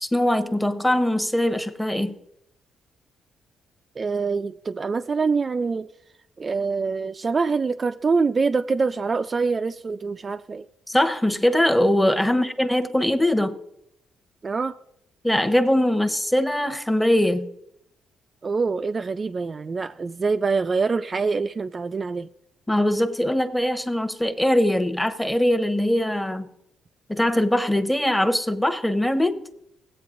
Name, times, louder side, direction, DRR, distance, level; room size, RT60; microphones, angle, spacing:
voice 1, 0.0-2.2 10.9-13.6 15.2-17.5 22.7-26.5 27.1-29.4, left 1 dB, 5° left, 0.9 m, -21 dB
voice 2, 4.0-5.9 6.4-10.7 12.3-12.4 14.4-14.7 18.4-22.3, right 4 dB, 35° right, 0.3 m, -25 dB
17.0 x 8.4 x 2.5 m
cardioid pair, 90°, 0 cm